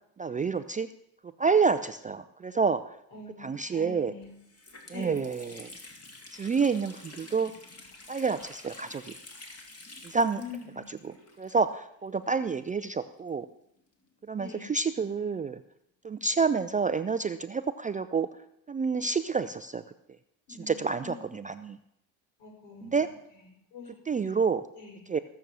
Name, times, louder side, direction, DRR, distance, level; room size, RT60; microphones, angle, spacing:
voice 1, 0.2-0.9 1.4-2.8 3.4-4.1 4.9-5.7 6.3-7.5 8.1-9.2 10.0-10.4 11.0-13.5 14.3-15.6 16.0-18.3 18.7-19.8 20.7-21.8 22.8-23.1 24.1-24.6 25.1-25.2, right 5 dB, 15° right, 10 dB, 0.4 m, -28 dB
voice 2, 3.1-4.4 4.9-5.2 10.1-10.9 14.4-14.7 20.5-21.3 22.4-24.4 24.7-25.0, left 4 dB, 65° left, 0 dB, 7.0 m, -45 dB
Water tap faucet, 3.7-3.8 4.2-12.0 12.2-12.3 13.1-14.7, left 2 dB, 30° left, 2.9 m, -50 dB
16.0 x 7.0 x 7.5 m, 0.77 s
supercardioid pair, 105°, 49 cm